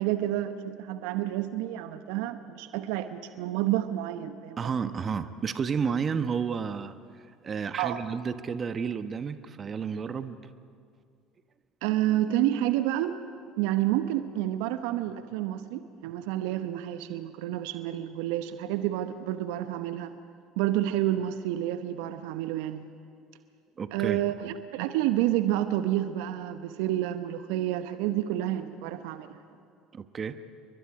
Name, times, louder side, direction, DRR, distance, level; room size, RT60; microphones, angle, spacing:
voice 1, 0.0-4.7 7.8-8.0 11.8-13.1 13.6-20.1 20.6-22.9 23.9-29.4, right 13 dB, 70° right, 10 dB, 1.0 m, -29 dB
voice 2, 4.6-10.4 23.8-24.2 29.9-30.4, right 6 dB, 35° right, 11 dB, 1.1 m, -31 dB
29.5 x 23.0 x 4.9 m, 2.3 s
hypercardioid pair, 65°, 0 cm